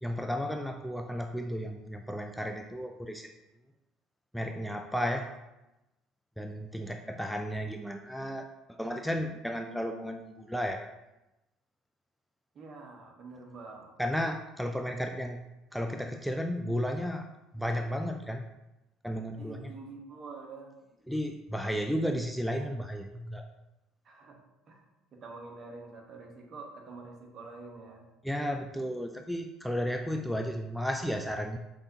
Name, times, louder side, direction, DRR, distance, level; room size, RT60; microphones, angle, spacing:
voice 1, 0.0-3.3 4.3-5.3 6.4-10.9 14.0-15.4 15.7-17.3 17.5-18.5 19.0-19.7 21.1-23.5 28.2-31.6, equal, ahead, 5 dB, 0.3 m, -33 dB
voice 2, 12.5-13.9 19.4-20.7 24.0-24.4 24.7-24.8 25.1-28.0, right 3 dB, 45° right, 1 dB, 1.1 m, -46 dB
5.5 x 3.4 x 2.8 m, 0.96 s
hypercardioid pair, 75°, 0 cm